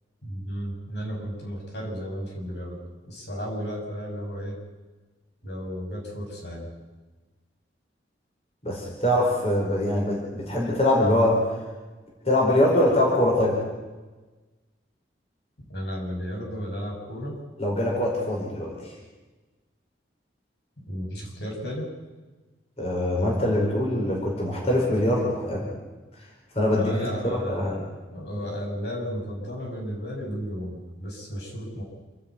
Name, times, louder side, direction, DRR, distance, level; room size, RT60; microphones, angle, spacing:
voice 1, 0.2-2.8 3.0-4.6 5.4-6.7 15.7-17.4 20.9-21.9 26.7-27.8 28.1-31.8, equal, 70° left, -1 dB, 6.3 m, -33 dB
voice 2, 8.6-11.4 12.3-13.6 17.6-18.7 22.8-25.7 26.5-26.9 27.2-27.8, left 1 dB, 35° left, -3 dB, 5.0 m, -23 dB
28.0 x 10.0 x 9.4 m, 1.2 s
head